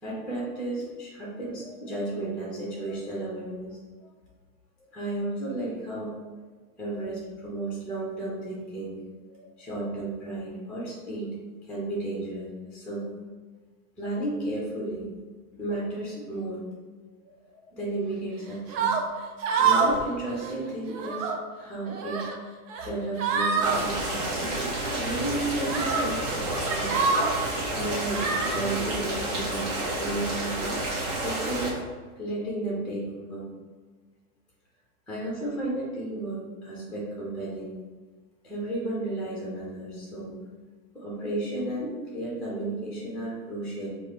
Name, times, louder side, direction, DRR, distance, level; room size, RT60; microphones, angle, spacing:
voice 1, 0.0-3.8 4.8-6.1 6.8-9.0 9.2-11.3 11.7-13.1 14.0-15.1 15.6-16.6 17.2-19.0 19.6-21.3 21.6-22.2 22.8-24.4 24.9-27.0 27.7-30.5 31.2-31.8 32.2-33.5 35.1-37.7 38.4-40.4 40.9-43.9, right 2 dB, ahead, -5 dB, 0.8 m, -33 dB
sound 1, 18.7-19.0 19.4-20.0 20.3-20.5 20.9-21.4 21.9-22.4 22.7-22.9 23.2-23.8 24.8-25.0 25.6-26.0 26.5-27.3 28.1-28.6, right 5 dB, 55° right, 0.7 m, -26 dB
sound 2, 23.6-31.7, right 1 dB, 40° right, 1.4 m, -30 dB
4.6 x 2.6 x 3.1 m, 1.4 s
hypercardioid pair, 130°, 45 cm